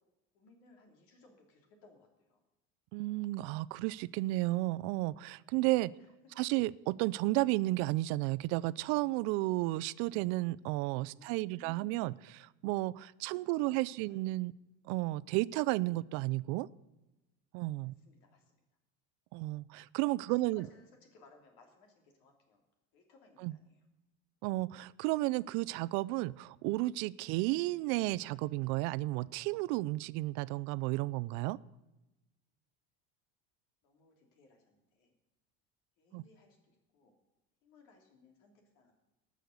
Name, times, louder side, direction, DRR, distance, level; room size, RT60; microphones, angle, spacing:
voice 1, 0.3-2.4 6.0-6.1 6.3-6.4 10.9-12.3 13.2-14.2 18.0-18.4 20.3-22.6 22.9-23.8 33.8-35.1 36.0-37.1 37.6-38.9, left 3 dB, 70° left, 3.2 m, -63 dB
voice 2, 2.9-5.9 6.4-12.1 12.6-14.5 14.9-16.7 17.5-17.9 19.3-20.7 23.4-23.6 24.4-31.6 36.1-36.2, right 19 dB, 65° right, 0.4 m, -33 dB
19.0 x 6.4 x 6.5 m
cardioid pair, 155°, 31 cm